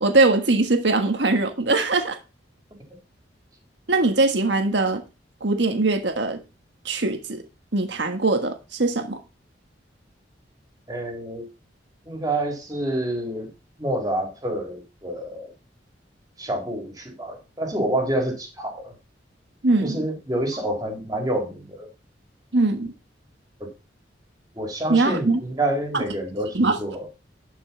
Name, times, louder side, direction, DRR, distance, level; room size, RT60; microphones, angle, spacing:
voice 1, 0.0-2.2 3.9-5.0 5.4-6.4 6.8-7.4 7.7-9.2 19.6-20.0 22.5-22.9 24.9-25.4 25.9-26.0 26.5-26.8, right 3 dB, 70° right, 1.5 m, -21 dB
voice 2, 10.9-11.5 12.1-13.5 13.8-15.5 16.4-18.9 19.8-21.9 23.6-23.7 24.6-27.0, right 1 dB, 20° right, 3.4 m, -28 dB
12.0 x 5.8 x 4.3 m
head